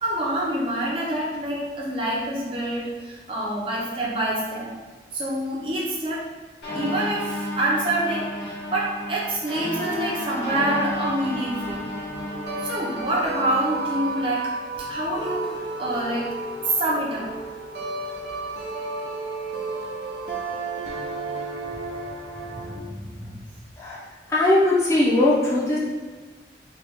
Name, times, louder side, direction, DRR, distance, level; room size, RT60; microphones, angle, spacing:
voice 1, 0.0-4.7 5.1-6.3 6.7-11.9 12.6-14.5 14.8-16.3 16.6-17.3 22.5-23.4, right 1 dB, 30° right, -5 dB, 0.6 m, -27 dB
sound 1, 6.6-14.2, left 1 dB, 75° left, 1.4 m, -33 dB
sound 2, 9.7-22.8, right 3 dB, 70° right, 0.6 m, -33 dB
voice 2, 23.8-25.8, left 1 dB, 15° left, -6 dB, 0.7 m, -20 dB
3.0 x 2.9 x 3.5 m, 1.3 s
head